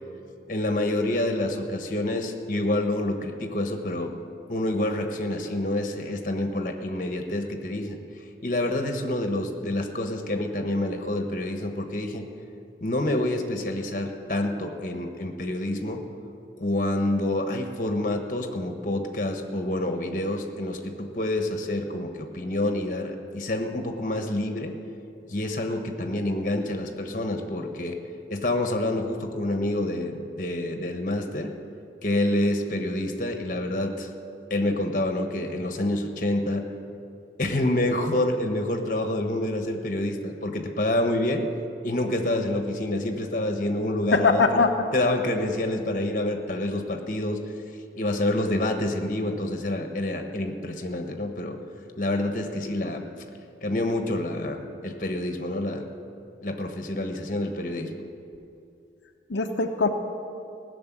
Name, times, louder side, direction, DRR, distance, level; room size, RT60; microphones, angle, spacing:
voice 1, 0.4-4.1 4.5-8.0 8.4-12.2 12.8-16.0 16.6-24.7 25.3-28.0 28.3-31.5 32.0-34.1 34.5-36.7 37.4-41.4 41.8-47.4 48.0-51.6 52.0-53.1 53.6-55.9 56.4-57.9, left 1 dB, 45° left, 5 dB, 1.2 m, -27 dB
voice 2, 44.1-44.7 59.3-59.9, left 4 dB, 85° left, 3 dB, 0.8 m, -21 dB
16.5 x 6.8 x 9.3 m, 2.6 s
head